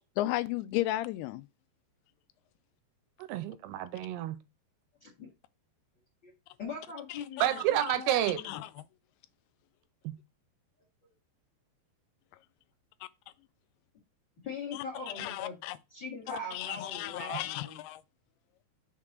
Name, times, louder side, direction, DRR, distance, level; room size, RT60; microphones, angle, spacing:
voice 1, 0.2-1.5 7.1-8.0 8.4-8.7 14.7-14.8 15.2-15.8 16.3-18.0, left 16 dB, 85° left, 2.3 m, -35 dB
voice 2, 3.3-4.4 7.4-8.4 10.0-10.1, right 13 dB, 80° right, 2.5 m, -29 dB
voice 3, 6.6-8.6 14.4-15.6 15.9-17.8, left 3 dB, 50° left, 1.3 m, -41 dB
6.5 x 3.6 x 5.9 m
omnidirectional pair, 5.0 m